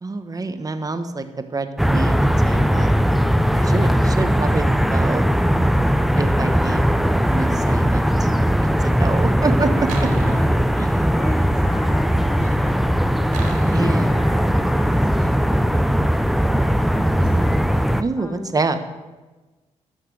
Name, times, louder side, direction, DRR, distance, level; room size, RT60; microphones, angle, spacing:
voice 1, 0.0-2.9 3.7-5.3 6.2-8.3 8.8-9.9 13.7-14.1 18.0-18.8, right 3 dB, 30° right, 8 dB, 1.1 m, -26 dB
sound 1, 1.8-18.0, equal, ahead, 0.5 m, -19 dB
voice 2, 3.5-3.9 10.0-10.7 11.1-15.8 16.3-17.5 18.2-18.6, left 2 dB, 20° left, 4 dB, 1.0 m, -35 dB
sound 2, 9.9-11.1 13.3-14.1, right 5 dB, 90° right, 1.2 m, -35 dB
12.5 x 5.9 x 6.3 m, 1.2 s
cardioid pair, 70°, 12 cm